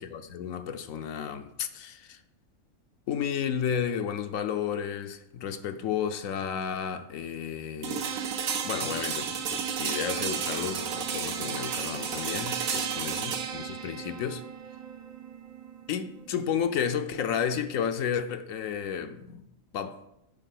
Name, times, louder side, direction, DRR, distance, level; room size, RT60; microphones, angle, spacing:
voice 1, 0.0-2.2 3.1-8.1 8.6-14.4 15.9-19.5 19.7-20.0, left 8 dB, 75° left, 1.0 m, -32 dB
sound 1, 7.8-17.7, right 7 dB, 80° right, 1.2 m, -33 dB
9.2 x 3.6 x 5.8 m
omnidirectional pair, 1.4 m